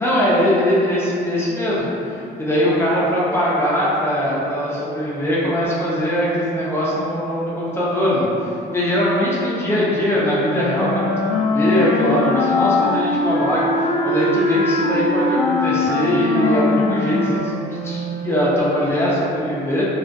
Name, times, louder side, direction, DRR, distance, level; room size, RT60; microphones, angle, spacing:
voice 1, 0.0-19.8, equal, 15° left, -7 dB, 0.6 m, -21 dB
Wind instrument woodwind instrument, 10.2-18.4, left 2 dB, 70° left, 0.4 m, -21 dB
2.4 x 2.3 x 2.5 m, 2.7 s
cardioid pair, 110°, 17 cm